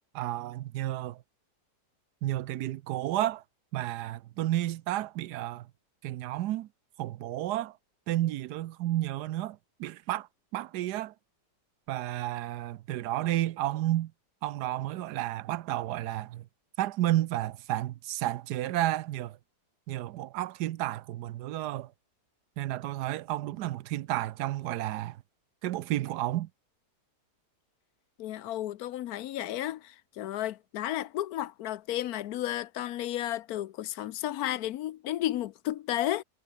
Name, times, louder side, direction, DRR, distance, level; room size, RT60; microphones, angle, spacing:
voice 1, 0.1-1.2 2.2-3.4 3.7-5.7 6.0-6.7 7.0-7.7 8.1-10.3 10.5-11.1 11.9-14.1 14.4-16.5 16.8-19.4 19.9-21.9 22.6-25.2 25.6-26.5, right 14 dB, 85° right, 1.2 m, -31 dB
voice 2, 28.2-36.2, left 13 dB, 70° left, 1.1 m, -33 dB
omnidirectional pair, 1.7 m